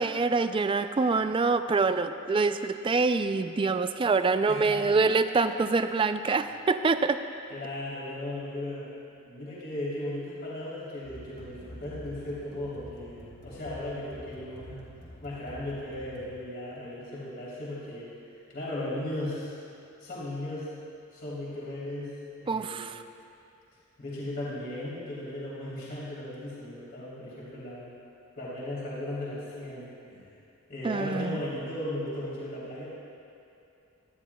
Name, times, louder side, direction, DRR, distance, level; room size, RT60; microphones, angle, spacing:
voice 1, 0.0-7.2 22.5-23.0 30.8-31.4, right 4 dB, 25° right, 10 dB, 0.3 m, -25 dB
voice 2, 4.5-5.0 6.3-6.4 7.5-8.9 9.2-14.8 15.2-18.1 18.5-19.6 20.0-20.7 21.1-22.9 24.0-27.9 28.4-30.3 30.7-32.9, left 1 dB, 50° left, -8 dB, 3.2 m, -36 dB
sound 1, 11.0-16.7, equal, 30° left, 3.1 m, -48 dB
18.0 x 13.0 x 2.3 m, 2.6 s
head